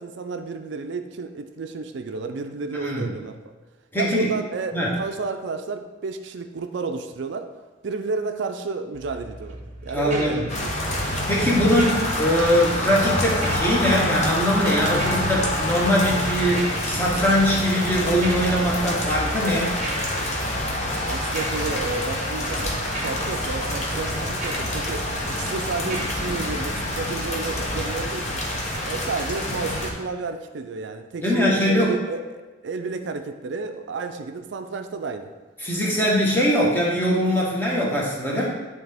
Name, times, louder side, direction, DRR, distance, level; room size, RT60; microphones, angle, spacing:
voice 1, 0.0-3.4 4.0-7.5 7.8-10.7 11.0-11.1 21.1-28.4 28.8-35.3, right 4 dB, 65° right, 7 dB, 0.4 m, -31 dB
voice 2, 2.8-3.1 3.9-4.3 4.7-4.9 9.9-10.4 11.3-19.7 31.2-31.9 35.6-38.5, equal, 10° left, -4 dB, 1.1 m, -22 dB
sound 1, 8.9-28.7, right 1 dB, 35° right, 0.8 m, -38 dB
sound 2, 10.5-29.9, left 1 dB, 35° left, 0.8 m, -27 dB
9.3 x 3.4 x 3.4 m, 1.2 s
head